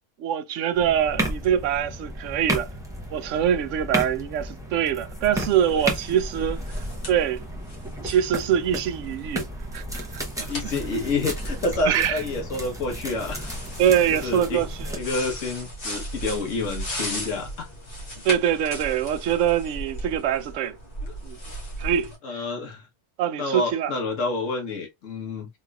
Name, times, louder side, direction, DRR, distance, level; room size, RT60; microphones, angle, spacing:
voice 1, 0.2-2.7 3.1-6.6 7.1-7.4 8.0-9.5 9.7-10.7 11.8-12.2 13.8-15.0 18.2-20.8 21.2-21.4 21.8-22.4 23.2-23.9, right 9 dB, 80° right, 0.9 m, -24 dB
sound 1, 0.7-15.0, right 1 dB, 5° right, 0.8 m, -33 dB
sound 2, 5.4-22.2, equal, 50° left, 1.4 m, -37 dB
voice 2, 10.4-13.5 14.2-14.6 14.9-17.7 21.0-21.1 22.2-22.9 23.4-25.5, left 3 dB, 85° left, 1.5 m, -29 dB
3.7 x 3.1 x 2.3 m
omnidirectional pair, 1.3 m